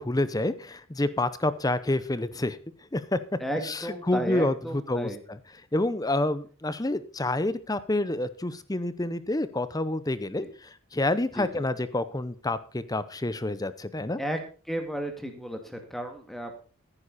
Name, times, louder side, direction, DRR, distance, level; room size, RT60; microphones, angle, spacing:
voice 1, 0.0-2.6 2.9-3.2 3.6-5.4 5.7-14.2, left 2 dB, 15° left, 14 dB, 0.7 m, -28 dB
voice 2, 3.4-5.2 10.4-10.5 11.3-11.5 14.2-14.4 14.7-16.5, equal, ahead, 4 dB, 2.1 m, -33 dB
14.5 x 9.9 x 4.2 m, 0.38 s
head